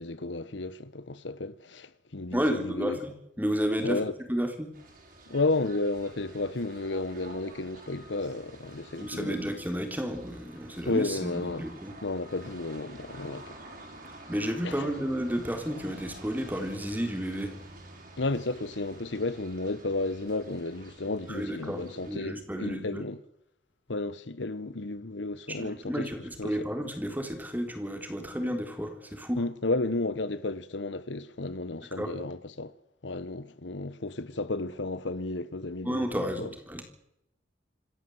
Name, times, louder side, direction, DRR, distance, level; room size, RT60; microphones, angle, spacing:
voice 1, 0.0-3.0 3.8-4.1 5.3-9.4 10.9-11.7 12.0-13.6 14.6-14.9 18.2-23.2 23.9-26.1 26.4-26.7 29.4-32.7 33.0-36.5, left 2 dB, 75° left, 1.1 m, -32 dB
voice 2, 2.3-3.1 3.4-4.0 4.3-4.7 9.0-11.9 14.3-17.6 21.3-23.0 25.5-29.4 32.0-32.2 35.8-36.8, equal, 10° right, 3.6 m, -32 dB
sound 1, 4.7-22.1, right 2 dB, 50° right, 6.5 m, -49 dB
27.0 x 13.5 x 7.9 m
head